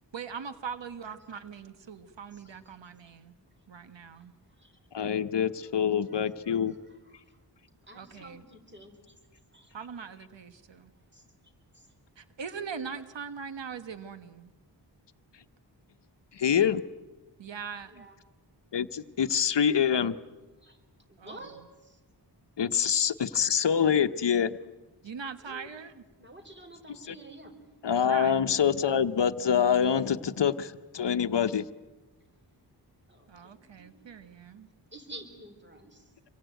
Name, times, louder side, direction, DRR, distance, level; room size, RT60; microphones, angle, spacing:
voice 1, 0.1-3.3 3.7-4.3 7.9-8.4 9.7-10.9 12.2-14.5 17.4-18.1 21.2-21.5 25.0-26.0 28.0-28.4 33.3-34.7, right 6 dB, 90° right, 11 dB, 1.4 m, -41 dB
voice 2, 4.9-6.7 16.3-16.8 18.7-20.2 22.6-24.6 27.1-27.2 27.8-30.7 30.9-31.7, left 8 dB, 75° left, 11 dB, 1.0 m, -25 dB
voice 3, 6.3-7.4 7.9-9.1 9.5-9.7 11.1-11.2 11.7-11.9 17.8-18.2 20.6-20.8 21.1-22.0 25.4-25.7 26.2-27.6 30.1-30.2 33.1-34.0 34.9-36.1, right 1 dB, 25° right, 5 dB, 4.7 m, -50 dB
26.5 x 23.5 x 9.3 m, 1.2 s
wide cardioid pair, 95°, 43 cm